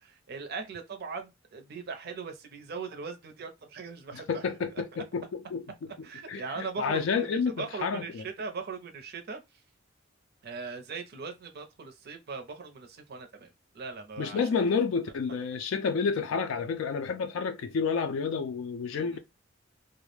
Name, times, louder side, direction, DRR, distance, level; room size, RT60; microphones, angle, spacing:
voice 1, 0.0-4.4 6.0-9.4 10.4-14.4 18.9-19.2, right 4 dB, 55° right, 0.5 m, -40 dB
voice 2, 4.1-5.9 6.3-8.2 14.2-19.2, left 5 dB, 75° left, 0.3 m, -30 dB
2.3 x 2.0 x 3.0 m
head